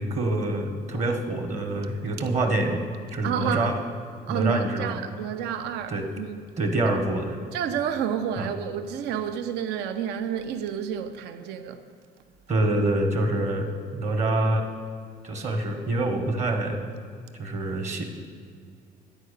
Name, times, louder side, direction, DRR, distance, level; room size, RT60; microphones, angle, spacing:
voice 1, 0.0-2.8 3.1-3.8 4.3-5.0 5.9-6.1 6.6-7.4 8.4-8.5 12.5-13.7 13.9-14.6 15.2-16.8 17.4-18.0, right 2 dB, 45° right, 0.9 m, -26 dB
voice 2, 3.2-3.7 4.3-6.4 7.5-11.8, right 8 dB, 85° right, 0.5 m, -30 dB
9.7 x 4.7 x 6.6 m
cardioid pair, 110°, 17 cm